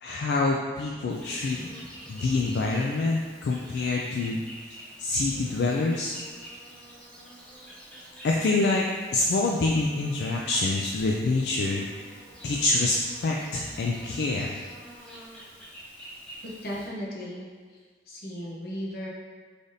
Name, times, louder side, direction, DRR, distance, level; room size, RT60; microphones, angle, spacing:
voice 1, 0.0-1.6 2.1-4.4 5.0-6.1 8.2-8.9 9.1-12.1 12.4-14.6, left 3 dB, 75° left, -1 dB, 0.3 m, -26 dB
Insect, 1.1-16.8, right 1 dB, 5° left, 0.6 m, -46 dB
voice 2, 16.4-17.8 18.1-19.1, equal, 55° left, -4 dB, 0.8 m, -36 dB
3.8 x 3.3 x 2.6 m, 1.5 s
head